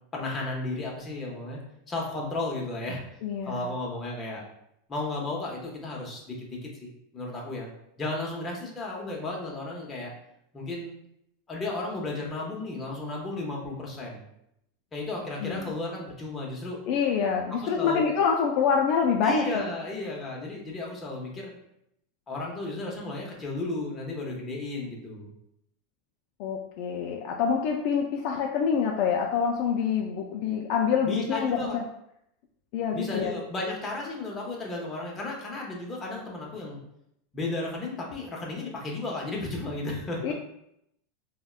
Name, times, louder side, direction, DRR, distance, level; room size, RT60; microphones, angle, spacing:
voice 1, 0.1-1.6 1.9-3.0 3.4-4.4 4.9-7.7 8.0-10.1 10.5-10.9 11.5-14.2 14.9-16.8 17.5-18.0 19.2-21.5 22.3-25.3 31.0-31.8 32.9-36.8 37.3-40.3, left 2 dB, 20° left, -2 dB, 0.7 m, -34 dB
voice 2, 3.2-3.6 15.4-15.7 16.9-19.6 26.4-31.8 32.7-33.3 40.2-40.3, left 6 dB, 55° left, 1 dB, 0.3 m, -26 dB
3.4 x 2.1 x 2.3 m, 0.77 s
supercardioid pair, 140°, 0 cm